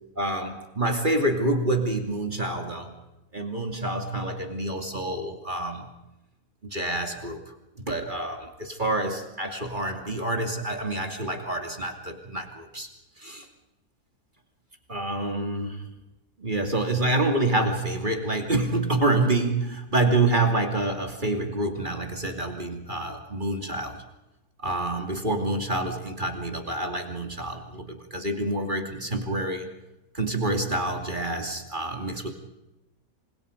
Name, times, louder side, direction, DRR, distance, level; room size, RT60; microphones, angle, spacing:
voice 1, 0.2-2.9 3.3-5.9 6.7-12.9 13.2-13.5 14.9-15.9 16.4-24.0 24.6-29.7 30.1-32.3, right 2 dB, 30° right, 4 dB, 2.8 m, -27 dB
27.5 x 26.5 x 5.2 m, 0.97 s
omnidirectional pair, 1.6 m